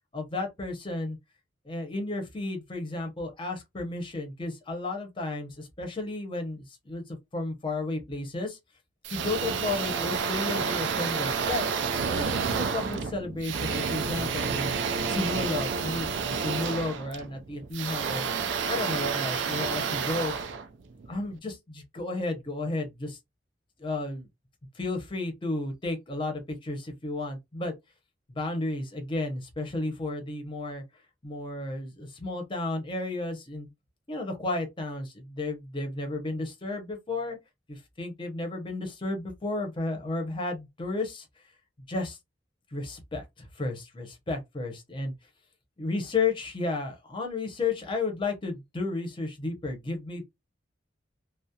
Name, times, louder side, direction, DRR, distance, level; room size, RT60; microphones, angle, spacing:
voice 1, 0.1-1.2 1.6-8.6 9.1-11.6 12.0-14.8 15.1-18.2 18.7-20.3 21.1-23.2 23.8-24.3 24.7-27.7 28.3-30.8 31.2-33.7 34.1-37.4 37.7-41.3 41.9-42.2 42.7-45.1 45.8-50.2, left 2 dB, 25° left, 0.7 m, -33 dB
sound 1, 9.0-21.3, right 5 dB, 70° right, 0.4 m, -30 dB
2.3 x 2.0 x 2.7 m
head